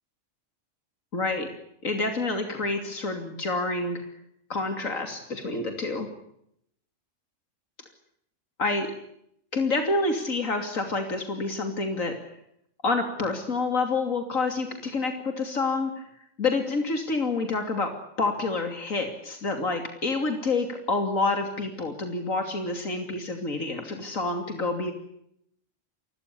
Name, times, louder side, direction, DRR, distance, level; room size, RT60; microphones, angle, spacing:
voice 1, 1.1-1.5 1.8-4.0 4.5-6.1 8.6-8.9 9.5-12.3 12.8-16.0 16.4-17.9 18.2-24.9, left 3 dB, 90° left, 5 dB, 3.3 m, -28 dB
28.0 x 22.5 x 7.0 m, 0.74 s
omnidirectional pair, 1.3 m